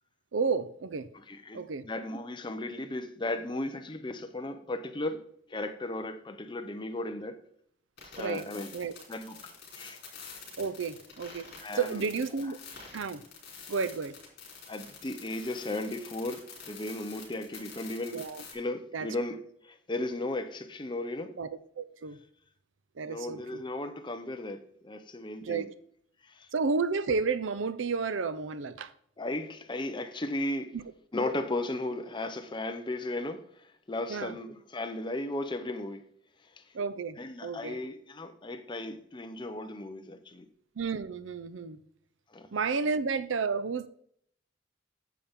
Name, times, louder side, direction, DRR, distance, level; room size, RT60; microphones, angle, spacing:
voice 1, 0.3-1.1 1.5-1.9 8.2-8.5 8.7-8.9 10.6-11.5 11.7-12.6 12.9-13.3 13.7-14.2 18.1-18.4 18.9-19.1 21.4-22.2 23.0-23.6 25.4-25.7 26.5-28.9 30.7-30.8 34.1-34.4 36.7-37.8 40.8-41.8 42.5-43.9, right 5 dB, 85° right, 0.6 m, -31 dB
voice 2, 1.3-5.2 5.5-7.4 8.0-8.7 9.1-10.0 11.6-12.0 14.7-19.4 19.6-21.3 23.1-25.7 26.3-26.5 29.2-30.8 31.1-33.4 33.9-36.0 37.2-40.4 42.3-42.5, left 2 dB, 25° left, 0.7 m, -35 dB
sound 1, 8.0-18.5, left 5 dB, 55° left, 3.3 m, -47 dB
9.2 x 7.1 x 3.6 m
head